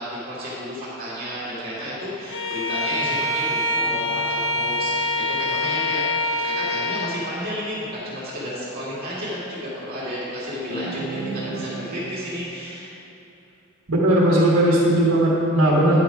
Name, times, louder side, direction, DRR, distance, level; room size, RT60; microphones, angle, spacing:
voice 1, 0.0-6.1 6.4-12.9 15.9-16.0, equal, 45° right, -9 dB, 2.1 m, -32 dB
Bowed string instrument, 2.3-7.2, left 2 dB, 60° left, 0.8 m, -25 dB
sound 1, 3.8-6.4 10.7-12.4, right 3 dB, 90° left, 2.2 m, -36 dB
voice 2, 13.9-16.0, right 1 dB, 80° right, -5 dB, 1.4 m, -18 dB
9.9 x 5.9 x 4.9 m, 2.9 s
head